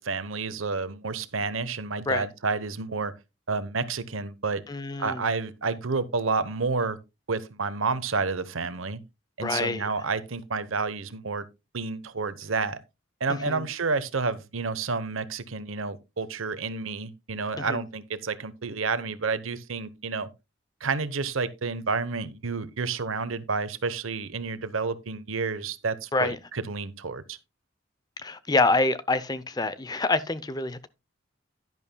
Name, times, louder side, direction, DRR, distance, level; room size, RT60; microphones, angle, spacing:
voice 1, 0.0-3.1 3.5-4.6 5.0-7.0 7.3-9.0 9.4-11.5 11.7-12.8 13.2-20.3 20.8-27.4, right 4 dB, 85° right, 0.9 m, -30 dB
voice 2, 4.7-5.2 9.4-9.9 13.5-13.6 17.6-17.8 26.1-26.4 28.2-30.9, left 3 dB, 20° left, 0.5 m, -26 dB
11.0 x 11.0 x 2.2 m
head